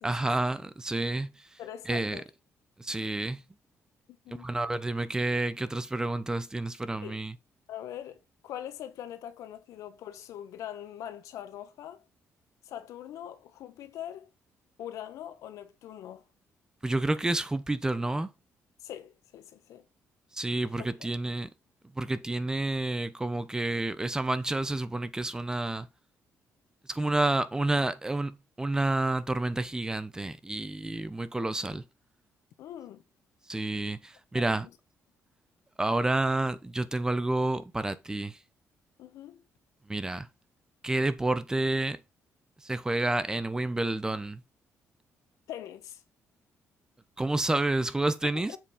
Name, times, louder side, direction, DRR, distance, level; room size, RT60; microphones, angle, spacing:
voice 1, 0.0-1.3 1.9-2.2 2.8-3.4 4.4-7.3 16.8-18.3 20.3-21.5 22.0-25.9 26.9-31.8 33.5-34.7 35.8-38.4 39.9-40.3 40.8-42.0 42.6-44.4 47.2-48.6, right 2 dB, 10° right, 0.9 m, -29 dB
voice 2, 1.6-2.2 4.2-4.5 7.0-7.2 7.7-8.2 8.4-12.0 12.6-14.3 14.8-16.2 18.8-19.8 20.6-20.9 32.6-33.0 34.3-34.7 39.0-39.4 45.5-46.0 48.5-48.6, left 11 dB, 85° left, 1.2 m, -42 dB
7.5 x 5.3 x 4.2 m
cardioid pair, 120°, 5 cm